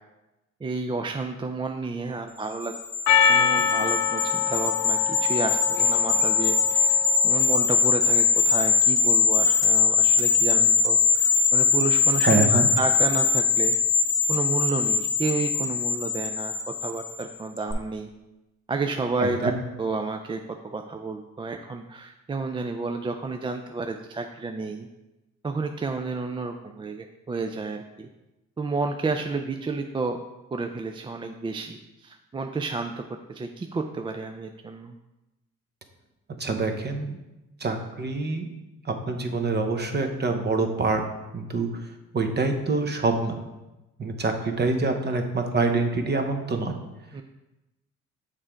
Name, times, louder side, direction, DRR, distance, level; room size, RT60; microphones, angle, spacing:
voice 1, 0.6-2.7 3.3-13.8 14.3-16.5 16.8-18.1 18.7-19.5 19.8-24.9 25.4-28.1 28.6-30.2 30.5-35.0 45.1-45.2 47.1-47.2, right 3 dB, 20° right, 5 dB, 0.3 m, -31 dB
sound 1, 2.6-17.2 17.6-17.7, left 5 dB, 10° left, 1.0 m, -22 dB
Percussion, 3.1-7.7, left 7 dB, 70° left, 0.6 m, -25 dB
voice 2, 12.2-12.7 19.2-19.5 36.4-37.2 37.6-38.5 38.8-41.0 41.3-41.7 42.1-43.4 44.0-46.7, right 3 dB, 35° right, 5 dB, 0.9 m, -25 dB
6.5 x 3.7 x 4.5 m, 1.0 s
cardioid pair, 90°, 30 cm